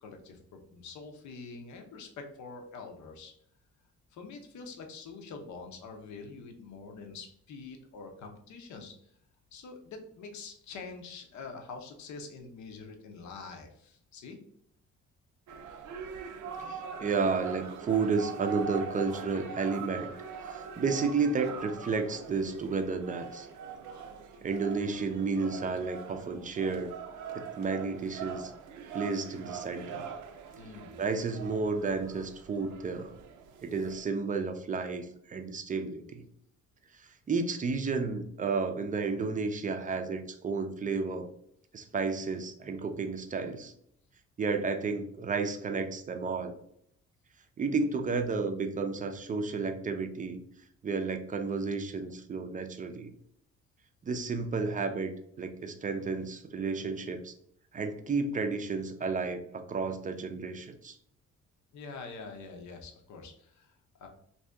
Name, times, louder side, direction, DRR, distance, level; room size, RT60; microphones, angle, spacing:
voice 1, 0.0-3.3 4.1-8.9 9.5-14.4 28.8-28.9 30.6-31.0 61.7-64.1, left 4 dB, 70° left, 4 dB, 0.7 m, -45 dB
sound 1, 15.5-34.0, right 6 dB, 80° right, 0.5 m, -43 dB
voice 2, 16.6-20.1 20.4-23.5 24.4-26.9 27.3-28.5 28.9-30.1 31.0-33.1 33.6-36.2 36.9-41.3 41.7-43.7 44.4-46.6 47.6-50.4 50.8-53.1 54.0-55.1 55.4-57.3 57.7-61.0, right 4 dB, 25° right, 6 dB, 0.4 m, -32 dB
2.7 x 2.6 x 3.4 m, 0.68 s
cardioid pair, 90°, 30 cm